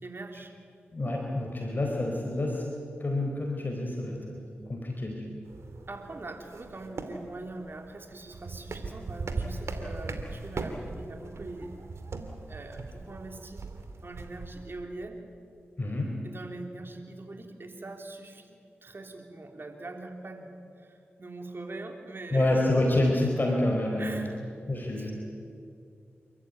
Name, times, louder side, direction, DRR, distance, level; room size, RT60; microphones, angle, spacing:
voice 1, 0.0-0.5 4.0-4.2 5.9-11.8 12.5-13.6 14.0-15.2 16.2-22.6 24.0-24.4 24.7-25.1, right 2 dB, 55° right, 4 dB, 3.2 m, -42 dB
voice 2, 0.9-2.7 3.0-5.4 15.8-16.2 22.3-24.2 24.7-25.1, left 1 dB, 45° left, 0 dB, 4.0 m, -28 dB
sound 1, 5.4-14.7, right 3 dB, 80° right, 2.4 m, -39 dB
29.0 x 13.5 x 9.4 m, 2.5 s
cardioid pair, 45°, 5 cm